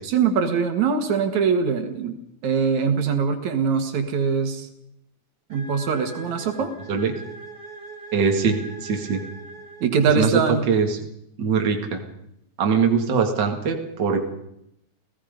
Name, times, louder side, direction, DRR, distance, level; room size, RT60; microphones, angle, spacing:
voice 1, 0.0-2.2 2.4-4.7 5.5-6.7 9.8-10.7, right 6 dB, 75° right, 6 dB, 3.0 m, -22 dB
sound 1, 5.5-10.4, right 3 dB, 15° right, 3.3 m, -41 dB
voice 2, 8.1-9.2 10.2-10.4 10.7-11.0 11.4-12.0 12.6-14.2, right 5 dB, 40° right, 3 dB, 2.5 m, -22 dB
30.0 x 17.0 x 5.2 m, 0.79 s
omnidirectional pair, 3.3 m